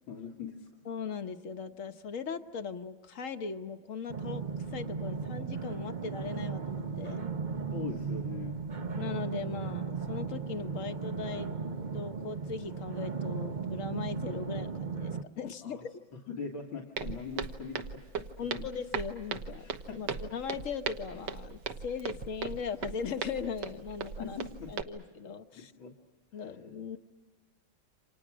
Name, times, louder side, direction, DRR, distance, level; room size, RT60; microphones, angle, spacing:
voice 1, 0.1-0.7 7.7-8.6 15.6-15.9 16.3-18.7 19.6-20.2 24.2-24.7 25.5-25.9 26.3-26.6, left 5 dB, 90° left, 0 dB, 2.5 m, -42 dB
voice 2, 0.8-4.4 4.7-7.3 8.9-11.5 11.9-15.9 18.4-19.7 20.0-24.4 24.7-25.7 26.3-27.0, left 6 dB, 50° left, 8 dB, 1.2 m, -39 dB
sound 1, 4.1-15.2, right 5 dB, 45° right, 0.6 m, -36 dB
Walk footsteps, 17.0-24.8, right 6 dB, 65° right, 1.7 m, -38 dB
29.0 x 26.5 x 6.2 m, 1.2 s
omnidirectional pair, 2.1 m